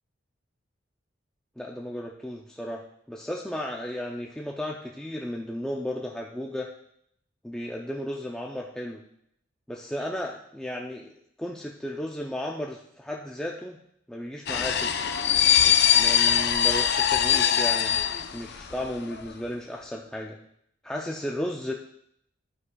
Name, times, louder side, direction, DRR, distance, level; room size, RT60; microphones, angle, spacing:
voice 1, 1.6-6.7 7.4-9.0 9.7-11.1 11.4-13.8 14.1-14.9 15.9-17.9 18.3-20.4 20.8-21.7, left 1 dB, 5° left, -1 dB, 0.5 m, -34 dB
sound 1, 14.5-18.9 19.1-19.3, left 9 dB, 60° left, 0.6 m, -22 dB
11.0 x 9.5 x 2.3 m, 0.72 s
head